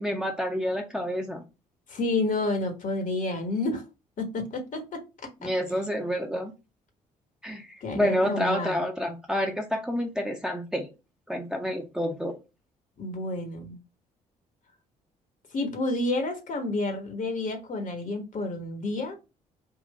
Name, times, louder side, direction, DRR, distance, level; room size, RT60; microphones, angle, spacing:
voice 1, 0.0-1.4 5.4-6.5 7.4-10.9 11.3-12.4, equal, 5° right, 0.9 m, -28 dB
voice 2, 1.9-3.8 4.2-5.0 5.4-5.5 7.8-8.8 13.0-13.8 15.5-19.2, left 2 dB, 40° left, 1.2 m, -30 dB
3.8 x 2.5 x 4.1 m
figure-of-eight pair, 45°, 19 cm